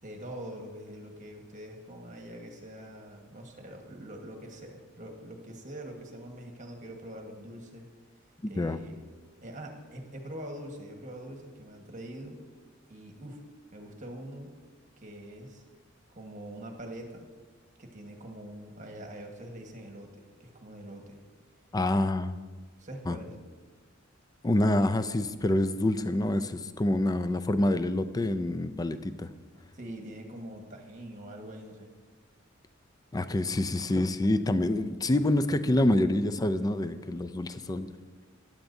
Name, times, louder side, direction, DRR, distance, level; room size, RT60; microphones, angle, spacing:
voice 1, 0.0-7.9 8.5-9.0 9.4-12.4 12.9-13.4 13.7-14.5 15.0-15.6 16.1-17.3 17.8-21.2 22.8-23.3 29.7-31.9, right 1 dB, 40° right, 3 dB, 1.4 m, -44 dB
voice 2, 8.4-8.8 21.7-22.4 23.1-23.2 24.4-29.3 33.1-37.9, left 1 dB, 20° left, 11 dB, 0.4 m, -27 dB
15.0 x 10.5 x 2.7 m, 1.3 s
head